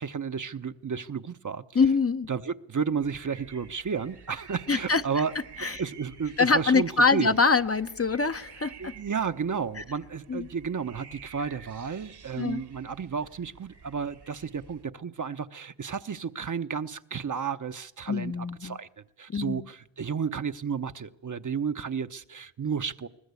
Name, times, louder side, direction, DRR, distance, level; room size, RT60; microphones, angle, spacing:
voice 1, 0.0-1.8 2.3-5.3 5.8-7.4 8.8-18.9 19.2-23.1, right 6 dB, 40° right, 0.9 m, -32 dB
voice 2, 1.7-2.3 4.7-5.0 5.6-5.8 6.4-8.9 10.3-10.5 12.4-12.6 18.1-18.8 19.3-19.6, left 4 dB, 30° left, 0.8 m, -24 dB
sound 1, 3.0-14.8, right 7 dB, 55° right, 1.6 m, -50 dB
21.0 x 20.0 x 8.3 m
cardioid pair, 55°, 47 cm